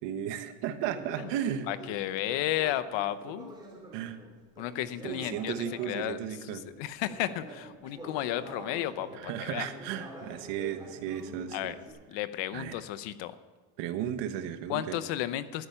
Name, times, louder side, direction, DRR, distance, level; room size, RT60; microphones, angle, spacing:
voice 1, 0.0-1.7 3.9-4.2 5.0-6.6 9.1-11.8 12.5-12.8 13.8-15.0, right 10 dB, 75° right, 7 dB, 1.2 m, -35 dB
Conversation, 0.8-6.5 7.0-11.9, right 1 dB, 10° right, 2.8 m, -46 dB
voice 2, 1.7-3.5 4.6-5.5 5.9-6.2 6.5-9.7 11.5-11.7 12.1-13.3 14.7-15.7, left 13 dB, 75° left, 13 dB, 0.8 m, -33 dB
13.0 x 9.9 x 5.7 m, 1.3 s
cardioid pair, 125°, 44 cm